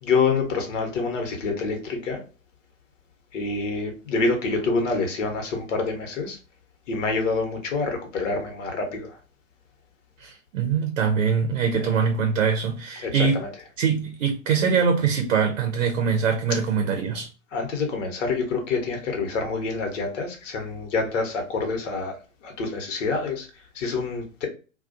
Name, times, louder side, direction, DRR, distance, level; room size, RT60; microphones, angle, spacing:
voice 1, 0.0-2.2 3.3-6.4 6.9-9.2 11.7-12.0 13.0-13.5 17.5-24.5, left 4 dB, 60° left, 1.0 m, -27 dB
voice 2, 10.2-13.4 13.8-17.3, right 6 dB, 65° right, 0.7 m, -23 dB
2.4 x 2.2 x 2.5 m
hypercardioid pair, 110°, 41 cm